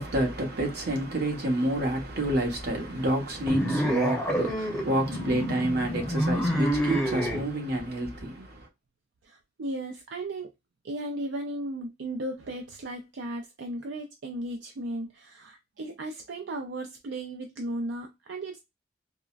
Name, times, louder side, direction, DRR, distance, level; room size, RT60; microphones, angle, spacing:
voice 1, 0.0-8.7, right 1 dB, 60° right, 1.0 m, -28 dB
sound 1, 3.5-7.4, equal, 5° left, 0.7 m, -28 dB
voice 2, 9.2-10.5 10.8-18.6, right 1 dB, 75° right, 0.5 m, -35 dB
3.6 x 2.1 x 2.3 m
head